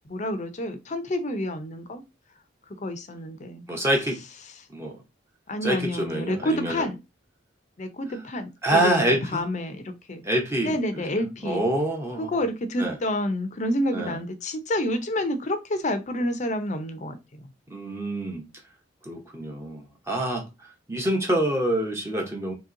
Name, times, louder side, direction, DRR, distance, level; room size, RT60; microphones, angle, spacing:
voice 1, 0.1-2.0 2.8-3.6 5.5-7.0 7.8-9.0 9.3-10.2 10.6-11.6 12.2-17.4, left 1 dB, 40° left, 0.6 m, -29 dB
voice 2, 3.7-4.2 4.7-5.0 5.6-6.9 8.6-9.4 10.2-12.3 12.8-13.0 13.9-14.2 17.7-18.5 19.0-20.4 20.9-22.5, right 1 dB, 15° right, 0.8 m, -26 dB
2.9 x 2.9 x 3.7 m
head